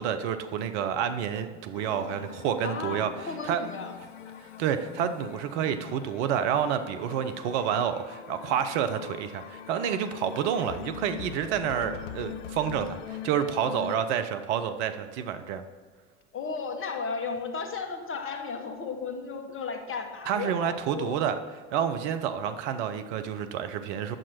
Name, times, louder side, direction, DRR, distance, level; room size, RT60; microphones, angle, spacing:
voice 1, 0.0-3.1 3.5-3.6 4.6-15.6 20.3-21.4 21.7-24.2, right 8 dB, 70° right, 9 dB, 0.8 m, -29 dB
sound 1, 1.7-14.0, left 9 dB, 90° left, 0.5 m, -42 dB
voice 2, 2.6-4.0 16.3-21.2, left 5 dB, 35° left, 5 dB, 1.5 m, -34 dB
9.1 x 7.4 x 4.3 m, 1.5 s
hypercardioid pair, 70°, 36 cm